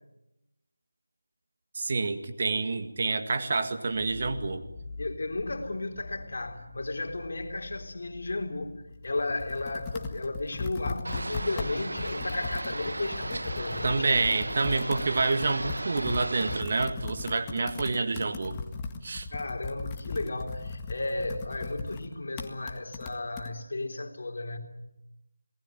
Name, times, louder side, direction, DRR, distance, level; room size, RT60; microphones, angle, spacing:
voice 1, 1.8-4.6 13.8-18.6 19.0-19.3, right 3 dB, 40° right, 1.9 m, -28 dB
sound 1, 3.9-9.6, left 3 dB, 30° left, 5.3 m, -45 dB
voice 2, 5.0-14.1 19.3-24.6, left 2 dB, 55° left, 3.9 m, -34 dB
Computer keyboard, 8.9-23.5, left 4 dB, 15° left, 1.8 m, -38 dB
sound 2, 11.0-16.6, right 2 dB, 75° right, 1.1 m, -36 dB
27.0 x 19.5 x 9.2 m
figure-of-eight pair, 165°, 0 cm